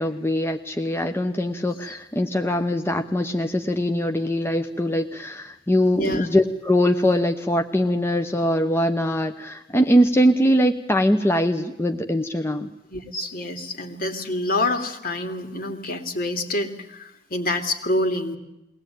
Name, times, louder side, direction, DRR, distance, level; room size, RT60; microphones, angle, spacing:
voice 1, 0.0-12.7, equal, 15° left, 5 dB, 0.9 m, -22 dB
voice 2, 6.0-6.3 12.9-18.4, left 1 dB, 55° left, 6 dB, 2.6 m, -27 dB
22.5 x 18.0 x 9.1 m, 0.90 s
head